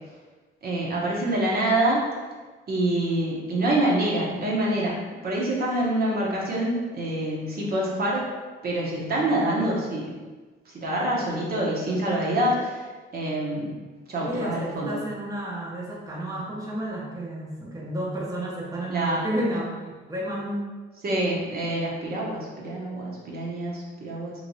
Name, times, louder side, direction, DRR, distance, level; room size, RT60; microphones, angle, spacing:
voice 1, 0.6-2.0 2.7-5.0 5.2-8.2 8.6-10.1 10.7-12.8 13.1-13.7 14.1-15.0 18.9-19.2 21.0-24.3, right 1 dB, 50° right, -4 dB, 0.8 m, -26 dB
voice 2, 14.3-20.7, right 1 dB, 15° right, -4 dB, 0.7 m, -31 dB
3.1 x 2.8 x 2.7 m, 1.3 s
cardioid pair, 90°, 20 cm